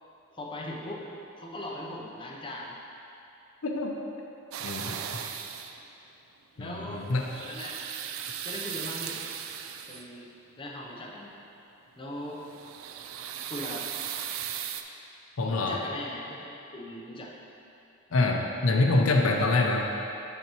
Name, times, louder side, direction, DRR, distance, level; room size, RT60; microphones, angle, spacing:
voice 1, 0.3-1.0 1.4-2.8 5.3-5.6 6.5-7.8 8.4-9.2 9.9-10.3 10.6-11.3 12.0-12.4 13.5-13.9 15.5-17.3, left 1 dB, 25° left, -2 dB, 0.7 m, -39 dB
voice 2, 3.6-3.9 4.6-5.2 6.6-7.3 15.4-15.8 18.1-19.8, left 2 dB, 75° left, 0 dB, 0.6 m, -25 dB
sound 1, 4.5-5.9 7.0-10.2 12.2-14.8, right 9 dB, 70° right, 0.3 m, -37 dB
6.7 x 5.6 x 3.0 m, 2.8 s
head